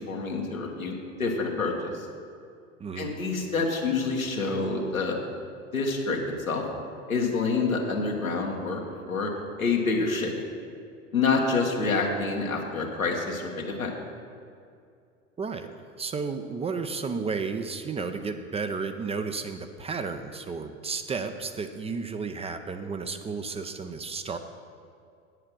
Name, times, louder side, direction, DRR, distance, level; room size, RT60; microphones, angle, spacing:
voice 1, 0.0-2.1 3.0-5.2 5.7-6.6 7.1-8.8 9.1-9.3 9.6-10.3 11.1-13.9, left 4 dB, 90° left, 0 dB, 1.5 m, -27 dB
voice 2, 2.8-3.1 15.4-24.4, right 4 dB, 15° right, 8 dB, 0.5 m, -33 dB
8.5 x 7.8 x 6.1 m, 2.4 s
figure-of-eight pair, 80°, 40 cm